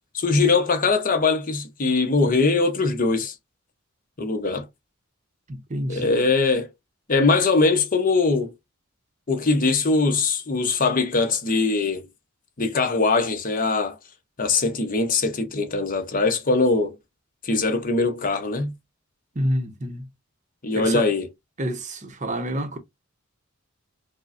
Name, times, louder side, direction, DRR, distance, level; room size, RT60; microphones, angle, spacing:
voice 1, 0.1-3.3 4.2-4.7 5.9-6.7 7.1-8.5 9.3-12.0 12.6-14.0 14.4-16.9 17.4-18.7 20.6-21.3, left 3 dB, 40° left, 0.8 m, -21 dB
voice 2, 5.5-6.3 19.3-20.1 20.8-21.1 21.6-22.8, equal, 35° right, 0.7 m, -28 dB
5.2 x 2.1 x 2.4 m
head